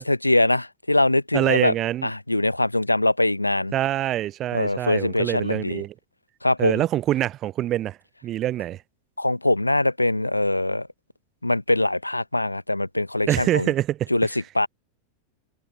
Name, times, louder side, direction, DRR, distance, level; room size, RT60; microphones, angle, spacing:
voice 1, 0.0-1.7 2.0-3.7 4.5-5.8 6.4-6.8 9.2-10.9 11.4-13.7 14.1-14.7, left 2 dB, 85° left, 1.1 m, -22 dB
voice 2, 1.3-2.1 3.7-5.9 6.6-8.0 8.2-8.8 13.3-14.1, right 13 dB, 30° right, 0.3 m, -25 dB
figure-of-eight pair, 90°, 0 cm